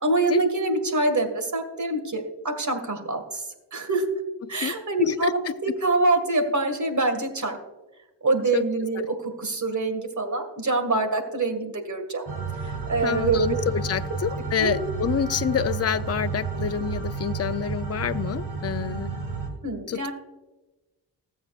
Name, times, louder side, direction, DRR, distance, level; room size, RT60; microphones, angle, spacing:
voice 1, 0.0-3.4 3.7-4.1 4.5-7.6 8.2-12.2 12.6-13.4 14.6-14.8 19.6-20.1, right 2 dB, 45° right, 6 dB, 2.1 m, -25 dB
voice 2, 4.4-4.7 5.0-5.5 8.5-8.7 8.9-9.1 13.0-19.2 19.9-20.1, left 8 dB, 40° left, 10 dB, 0.6 m, -27 dB
sound 1, 12.3-19.5, right 5 dB, 85° right, 2.2 m, -31 dB
19.5 x 7.3 x 2.5 m, 1.1 s
cardioid pair, 55°, 40 cm